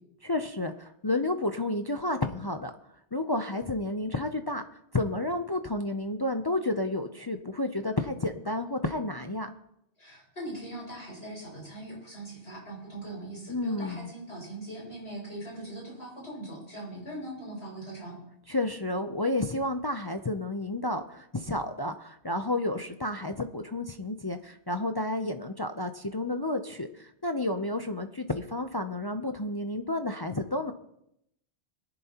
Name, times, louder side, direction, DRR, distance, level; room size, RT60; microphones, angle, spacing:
voice 1, 0.2-2.7 3.1-4.6 4.9-9.5 13.5-14.1 18.5-30.7, left 2 dB, 30° left, 7 dB, 0.5 m, -31 dB
voice 2, 10.0-18.2, right 1 dB, 70° left, -3 dB, 6.4 m, -41 dB
21.0 x 10.5 x 2.9 m, 0.78 s
omnidirectional pair, 1.2 m